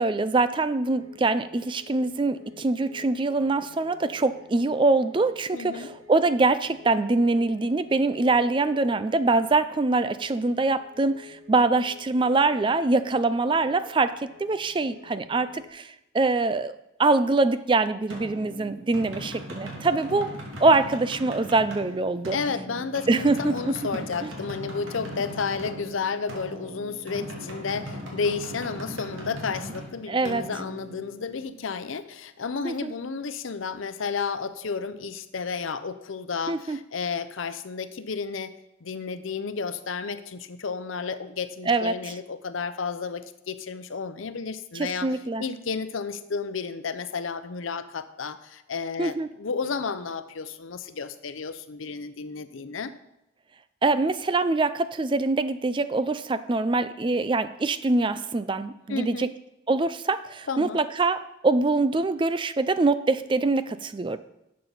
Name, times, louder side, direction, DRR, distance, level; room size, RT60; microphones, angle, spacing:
voice 1, 0.0-22.4 23.1-23.8 24.2-24.3 30.1-30.4 32.6-32.9 36.5-36.8 41.7-42.0 44.7-45.4 49.0-49.3 53.8-59.3 59.7-64.2, right 3 dB, 25° right, 13 dB, 0.3 m, -24 dB
sound 1, 0.9-15.7, left 7 dB, 65° right, 1.8 m, -51 dB
voice 2, 5.5-5.9 22.3-38.5 38.8-45.1 45.4-52.9 58.9-59.3 60.5-60.8, left 5 dB, 85° left, 12 dB, 0.7 m, -32 dB
sound 2, 18.1-31.6, equal, 90° right, 2.5 m, -39 dB
11.0 x 7.6 x 4.0 m, 0.88 s
head